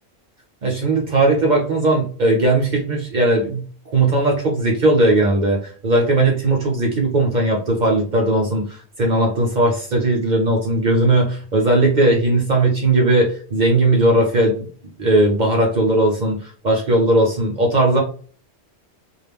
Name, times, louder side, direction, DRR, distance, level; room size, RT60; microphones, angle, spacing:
voice 1, 0.6-14.7 15.0-18.0, right 2 dB, 50° right, 0 dB, 0.6 m, -18 dB
2.3 x 2.0 x 3.4 m, 0.43 s
omnidirectional pair, 1.1 m